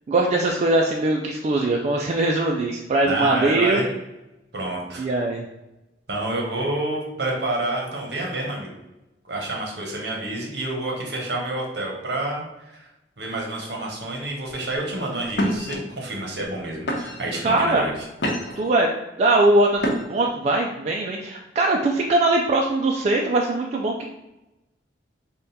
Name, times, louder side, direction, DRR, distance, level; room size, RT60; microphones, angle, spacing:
voice 1, 0.1-3.8 5.0-5.4 17.4-17.8 18.6-18.9 19.2-19.8 20.1-24.1, right 2 dB, 40° right, 0 dB, 0.3 m, -21 dB
voice 2, 3.0-3.9 4.5-5.1 6.1-8.7 9.3-12.4 12.7-12.8 13.2-17.9, right 2 dB, 65° right, -1 dB, 1.0 m, -28 dB
sound 1, 14.5-14.8 15.3-15.8 16.4-16.6 16.9-17.4 17.9-18.7 19.8-20.3, equal, 80° left, 0.8 m, -27 dB
3.6 x 2.2 x 4.0 m, 0.98 s
head